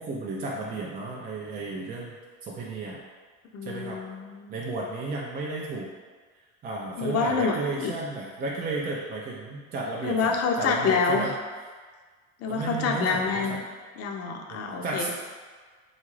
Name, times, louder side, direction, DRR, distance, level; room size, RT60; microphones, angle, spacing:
voice 1, 0.0-2.2 2.4-3.0 3.6-4.0 4.5-5.9 6.6-11.3 12.5-13.6 14.5-15.1, right 3 dB, 25° right, -3 dB, 0.3 m, -33 dB
voice 2, 3.5-4.5 7.0-7.9 10.0-11.3 12.4-13.6 14.0-15.1, left 4 dB, 40° left, 2 dB, 0.5 m, -27 dB
3.7 x 2.4 x 3.1 m, 1.5 s
supercardioid pair, 105°, 37 cm